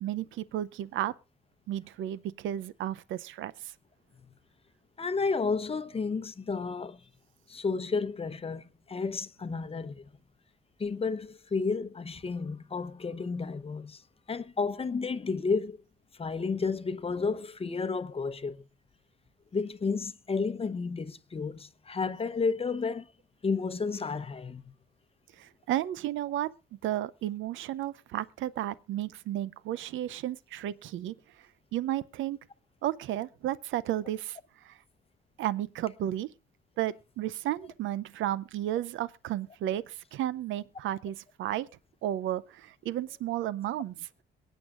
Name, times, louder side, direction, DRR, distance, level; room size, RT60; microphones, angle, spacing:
voice 1, 0.0-1.1 1.7-3.7 25.3-26.5 26.8-32.4 32.8-34.8 35.4-36.3 36.8-41.7 42.0-44.1, right 12 dB, 80° right, 0.6 m, -33 dB
voice 2, 5.0-7.0 7.5-10.0 10.8-14.0 14.3-15.8 16.2-18.6 19.5-23.1 23.4-24.7, left 4 dB, 30° left, 0.9 m, -32 dB
22.5 x 9.2 x 2.5 m
cardioid pair, 90°, 20 cm